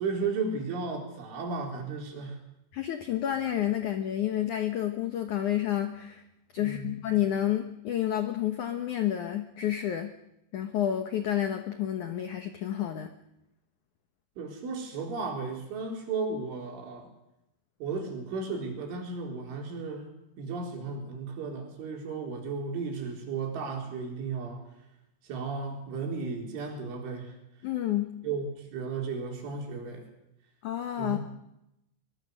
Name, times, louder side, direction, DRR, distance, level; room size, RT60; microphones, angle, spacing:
voice 1, 0.0-2.4 6.6-7.0 14.4-17.1 17.8-20.1 20.4-24.6 25.2-27.4 28.2-30.0 31.0-31.2, right 4 dB, 85° right, 1 dB, 6.6 m, -34 dB
voice 2, 2.7-6.2 6.5-10.1 10.5-13.1 27.6-28.2 30.6-31.2, left 11 dB, 85° left, 7 dB, 1.7 m, -30 dB
24.0 x 21.5 x 6.6 m, 0.86 s
omnidirectional pair, 5.4 m